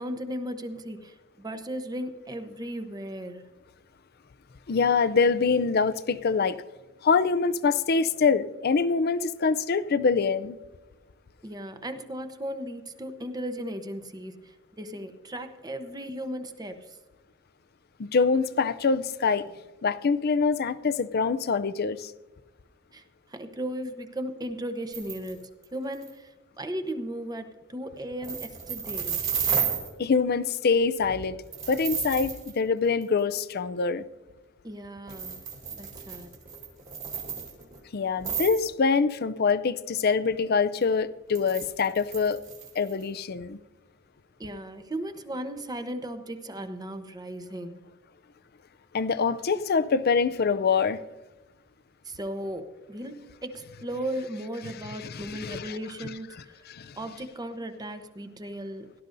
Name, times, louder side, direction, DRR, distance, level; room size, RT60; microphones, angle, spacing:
voice 1, 0.0-3.5 11.4-17.0 22.9-29.2 34.6-35.4 35.7-36.3 44.4-47.8 52.0-56.5 57.0-58.9, right 1 dB, 20° right, 9 dB, 0.9 m, -36 dB
voice 2, 4.7-6.6 7.0-10.6 18.0-19.5 19.8-22.1 30.0-31.4 31.7-34.0 37.9-42.4 42.8-43.6 48.9-51.0 55.0-56.1 56.7-57.0, left 5 dB, 50° left, 14 dB, 0.5 m, -25 dB
sound 1, 24.9-25.3 25.6-25.7 25.9-26.1 28.2-29.9 31.5-32.5 33.0-33.1 35.1-37.8 38.2-38.6 41.3-43.0, right 7 dB, 45° right, 2.9 m, -32 dB
17.5 x 12.0 x 2.6 m, 1.2 s
head